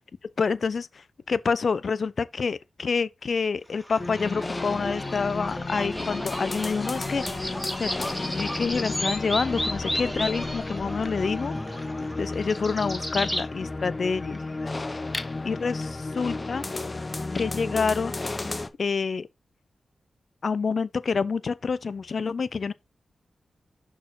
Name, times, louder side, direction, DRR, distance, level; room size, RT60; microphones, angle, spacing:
voice 1, 0.4-7.9 8.4-11.5 12.2-14.4 15.4-16.6 17.3-18.2 18.8-19.3 20.4-22.7, left 5 dB, 65° left, 0.5 m, -27 dB
sound 1, 3.8-13.5, left 1 dB, 5° left, 2.4 m, -33 dB
sound 2, 4.0-18.7, left 2 dB, 35° left, 0.9 m, -33 dB
6.1 x 4.6 x 3.9 m
cardioid pair, 45°, 0 cm